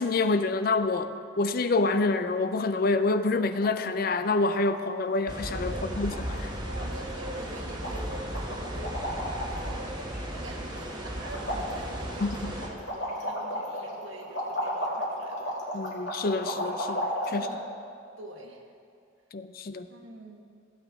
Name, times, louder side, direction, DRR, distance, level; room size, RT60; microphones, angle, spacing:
voice 1, 0.0-6.6 12.2-12.5 15.7-17.6 19.3-19.9, left 3 dB, 45° left, 10 dB, 0.4 m, -27 dB
sound 1, 2.3-2.8 3.1-3.2 3.4-3.7 4.0-4.8 5.0-5.3 5.6-5.7 5.9-6.5 6.8-6.9 7.2-7.6 7.8-9.8 10.1-10.9 11.2-17.5, equal, 60° left, 2.3 m, -34 dB
sound 2, 5.3-12.7, right 1 dB, 20° right, 1.1 m, -35 dB
voice 2, 5.7-6.0 6.6-15.8 17.3-17.7 18.2-18.6 19.9-20.4, right 2 dB, 85° right, 2 dB, 1.3 m, -44 dB
15.5 x 9.0 x 3.6 m, 2.4 s
head